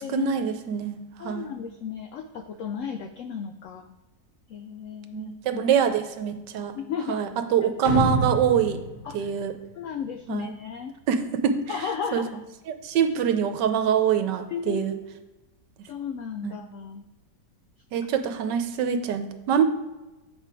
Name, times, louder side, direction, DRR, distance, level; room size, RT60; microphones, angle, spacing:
voice 1, 0.0-1.5 5.1-6.7 7.1-8.8 9.1-9.5 10.3-10.6 11.1-11.6 12.1-12.2 12.8-15.0 16.4-16.6 17.9-19.6, right 8 dB, 80° right, 8 dB, 1.3 m, -24 dB
voice 2, 1.2-3.9 4.5-5.6 6.8-7.2 7.6-7.7 9.0-9.3 9.8-10.9 11.7-12.4 14.5-14.8 15.8-17.0, left 7 dB, 90° left, 7 dB, 0.6 m, -34 dB
sound 1, 7.8-10.4, right 1 dB, 40° left, 1.5 m, -29 dB
7.6 x 5.1 x 4.7 m, 1.1 s
omnidirectional pair, 1.9 m